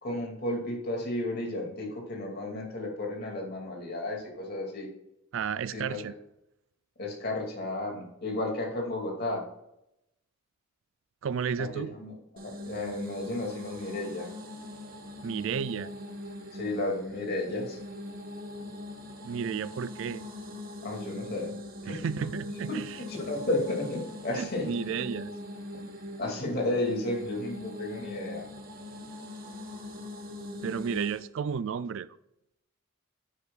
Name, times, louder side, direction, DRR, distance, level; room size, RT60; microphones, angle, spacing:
voice 1, 0.0-4.9 5.7-6.1 7.0-9.4 11.6-12.1 12.4-14.3 16.5-17.8 20.8-21.5 21.9-22.0 22.7-22.8 23.1-24.7 26.2-28.4, left 2 dB, 50° left, 2.5 m, -33 dB
voice 2, 5.3-6.1 11.2-11.9 15.2-15.9 19.2-20.3 21.9-23.0 24.4-25.4 30.6-32.2, right 6 dB, 65° right, 0.3 m, -32 dB
sound 1, 12.4-31.3, left 1 dB, 45° right, 1.1 m, -42 dB
9.9 x 9.4 x 2.4 m
head